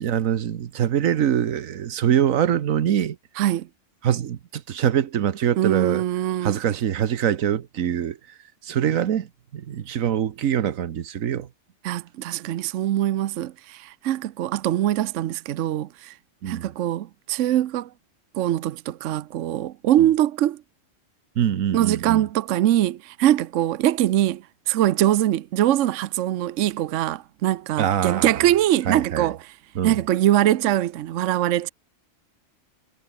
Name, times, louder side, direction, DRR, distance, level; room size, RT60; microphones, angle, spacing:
voice 1, 0.0-3.2 4.0-6.0 6.4-8.2 8.6-9.3 9.5-11.5 16.4-16.7 20.0-20.1 21.4-22.2 27.8-28.3 28.9-29.3 29.7-30.0, right 9 dB, 90° right, 1.4 m, -24 dB
voice 2, 3.4-3.7 5.6-6.6 11.8-16.2 16.5-17.9 18.3-20.6 21.7-29.5 29.8-31.7, right 12 dB, 70° right, 1.0 m, -22 dB
omnidirectional pair, 1.4 m